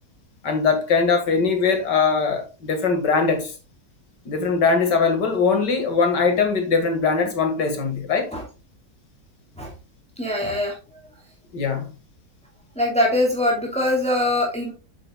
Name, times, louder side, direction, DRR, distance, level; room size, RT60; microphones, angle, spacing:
voice 1, 0.4-3.5 4.3-8.3 11.5-11.9, left 5 dB, 80° left, 2.5 m, -21 dB
voice 2, 10.2-10.7 12.8-14.7, left 1 dB, 5° left, 2.7 m, -22 dB
7.8 x 7.6 x 2.3 m
omnidirectional pair, 1.8 m